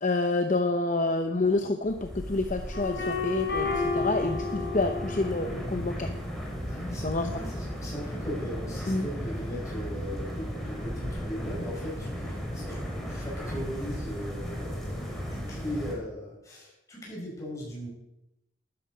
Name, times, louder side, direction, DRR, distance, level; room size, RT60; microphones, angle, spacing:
voice 1, 0.0-6.1 7.0-7.3 8.9-9.1, left 2 dB, 40° left, 6 dB, 0.7 m, -28 dB
sound 1, 1.8-16.0, equal, ahead, 3.1 m, -36 dB
sound 2, 2.7-5.6, left 4 dB, 60° left, 4.0 m, -31 dB
voice 2, 6.7-17.9, equal, 15° left, -4 dB, 5.6 m, -38 dB
12.5 x 11.5 x 5.2 m, 0.89 s
head